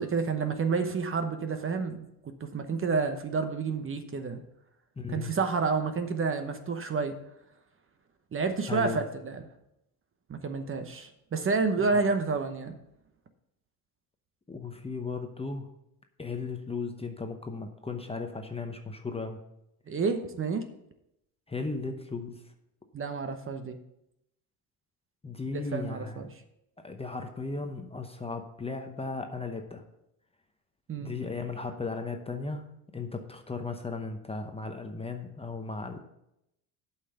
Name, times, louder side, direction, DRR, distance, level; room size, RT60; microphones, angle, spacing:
voice 1, 0.0-4.4 5.1-7.1 8.3-9.4 10.3-12.8 19.9-20.6 22.9-23.8 25.5-26.3 30.9-31.1, right 4 dB, 30° right, 8 dB, 0.9 m, -29 dB
voice 2, 5.0-5.3 8.7-9.0 11.9-12.0 14.5-15.7 16.2-19.4 21.5-22.4 25.2-26.3 26.8-29.8 31.0-32.7 32.9-36.0, left 4 dB, 15° left, 5 dB, 0.8 m, -36 dB
8.2 x 5.8 x 6.7 m, 0.82 s
supercardioid pair, 105°, 45 cm